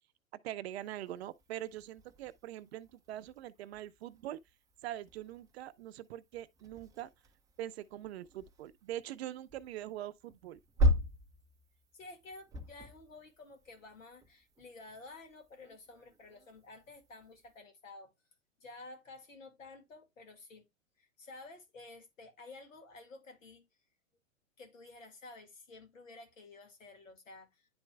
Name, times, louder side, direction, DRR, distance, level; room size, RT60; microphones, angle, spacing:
voice 1, 0.4-4.4 4.8-7.1 7.6-10.6, right 13 dB, 55° right, 0.6 m, -43 dB
sound 1, 0.7-17.6, equal, 10° right, 0.5 m, -40 dB
voice 2, 11.9-18.1 18.6-20.7 21.0-23.6 24.6-27.7, left 3 dB, 75° left, 2.1 m, -52 dB
10.0 x 4.4 x 2.2 m
hypercardioid pair, 110°, 39 cm